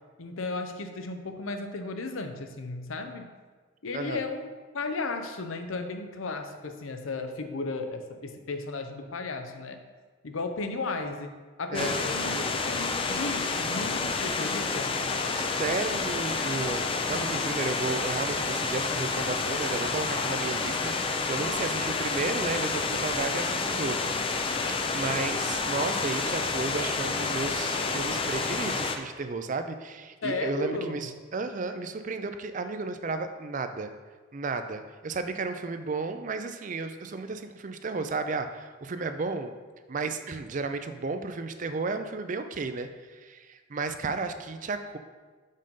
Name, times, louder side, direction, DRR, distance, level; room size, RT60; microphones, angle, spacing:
voice 1, 0.2-3.3 3.8-4.5 4.7-9.8 10.2-11.3 11.6-15.0 30.2-31.0, left 3 dB, 80° left, 6 dB, 0.7 m, -34 dB
voice 2, 3.9-4.3 11.7-12.1 12.3-12.5 14.3-14.5 15.3-33.9 34.3-39.5 39.9-45.0, right 3 dB, 40° right, 9 dB, 0.4 m, -33 dB
sound 1, 11.7-29.0, left 4 dB, 25° left, 0.4 m, -29 dB
5.4 x 5.2 x 5.4 m, 1.4 s
head